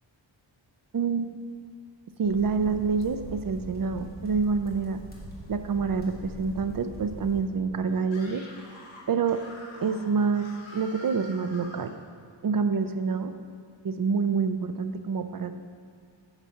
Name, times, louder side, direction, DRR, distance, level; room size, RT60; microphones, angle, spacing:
voice 1, 0.9-1.4 2.2-5.0 5.5-8.4 9.1-9.4 9.8-11.9 12.4-13.3 13.8-15.6, right 5 dB, 50° right, 9 dB, 0.5 m, -27 dB
sound 1, 2.2-7.4, equal, 20° left, 2.0 m, -43 dB
Screaming, 8.0-12.0, left 2 dB, 75° left, 1.5 m, -46 dB
9.1 x 4.1 x 6.5 m, 2.3 s
wide cardioid pair, 110°, 46 cm